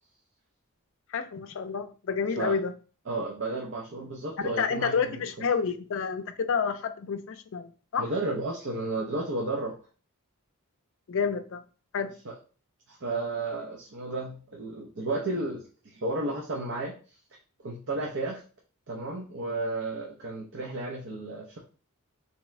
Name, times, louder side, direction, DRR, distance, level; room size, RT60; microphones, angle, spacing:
voice 1, 1.1-2.7 4.4-8.0 11.1-11.6 11.9-12.1, left 6 dB, 60° left, 8 dB, 0.4 m, -29 dB
voice 2, 3.1-5.1 8.0-9.8 12.2-12.3 12.9-17.0 17.6-18.4 18.9-21.6, right 2 dB, 55° right, 0 dB, 0.6 m, -33 dB
3.5 x 2.9 x 3.1 m, 0.37 s
head